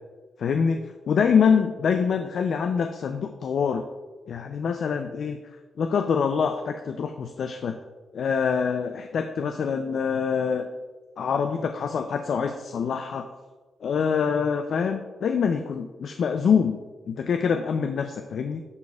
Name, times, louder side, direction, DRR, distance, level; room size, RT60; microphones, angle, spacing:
voice 1, 0.4-3.8 4.3-5.4 5.8-7.7 8.1-10.7 11.2-13.3 13.8-18.6, left 6 dB, 65° left, 6 dB, 0.3 m, -25 dB
10.5 x 4.1 x 2.3 m, 1.3 s
wide cardioid pair, 145°, 0 cm